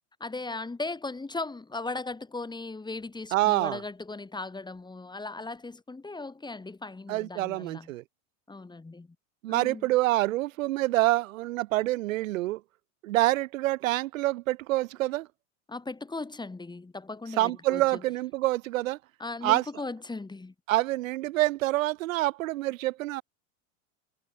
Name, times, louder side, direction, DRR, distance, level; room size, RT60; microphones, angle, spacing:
voice 1, 0.2-7.9 8.5-9.1 9.5-9.9 15.7-18.0 19.2-20.5, left 3 dB, 10° left, 5.8 m, -37 dB
voice 2, 3.3-3.8 7.1-8.0 9.4-12.6 13.0-15.3 17.4-19.0 19.4-19.6 20.7-23.2, right 17 dB, 75° right, 4.0 m, -26 dB
supercardioid pair, 115°, 40 cm